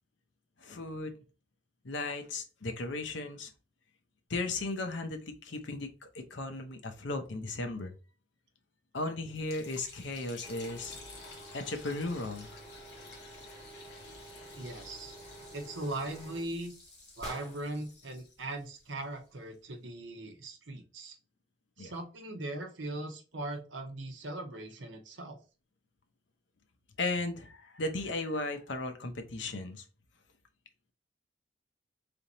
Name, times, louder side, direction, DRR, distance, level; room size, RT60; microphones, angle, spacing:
voice 1, 0.6-1.2 1.8-3.5 4.3-5.9 6.1-7.9 8.9-11.0 11.5-12.5 21.8-21.9 27.0-29.8, left 2 dB, 75° left, 6 dB, 0.8 m, -36 dB
Liquid, 9.3-19.5, left 4 dB, 60° left, 1.2 m, -53 dB
sound 1, 10.4-16.4, right 1 dB, 25° left, 2.0 m, -50 dB
voice 2, 14.5-15.1 15.5-16.7 17.2-21.2 21.8-25.4, right 2 dB, 85° right, 5 dB, 0.9 m, -39 dB
sound 2, 14.8-17.9, right 1 dB, 20° right, 1.3 m, -50 dB
3.5 x 2.8 x 4.0 m, 0.34 s
head